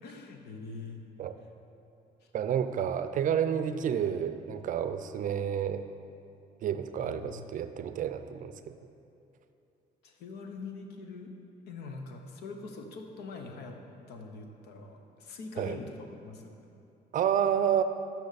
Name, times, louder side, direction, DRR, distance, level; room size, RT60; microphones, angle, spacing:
voice 1, 0.0-1.0 7.0-7.5 10.0-11.3 11.7-13.8 14.1-16.5, left 4 dB, 80° left, 4 dB, 1.0 m, -43 dB
voice 2, 2.3-5.9 6.6-8.8 15.6-15.8 17.1-17.8, right 9 dB, 50° right, 10 dB, 0.5 m, -30 dB
12.0 x 6.0 x 4.1 m, 2.7 s
cardioid pair, 110°, 17 cm